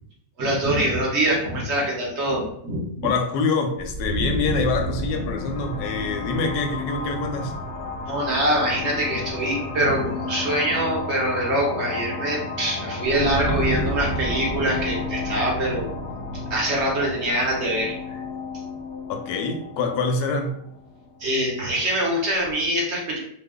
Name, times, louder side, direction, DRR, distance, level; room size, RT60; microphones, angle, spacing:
voice 1, 0.4-3.1 8.1-15.9 16.3-18.2 21.2-23.2, right 1 dB, 55° right, -3 dB, 1.0 m, -24 dB
voice 2, 3.0-7.5 19.1-20.5, left 4 dB, 90° left, 5 dB, 1.1 m, -25 dB
sound 1, 3.8-21.4, left 1 dB, 55° left, 0.7 m, -31 dB
2.9 x 2.2 x 3.5 m, 0.71 s
omnidirectional pair, 1.6 m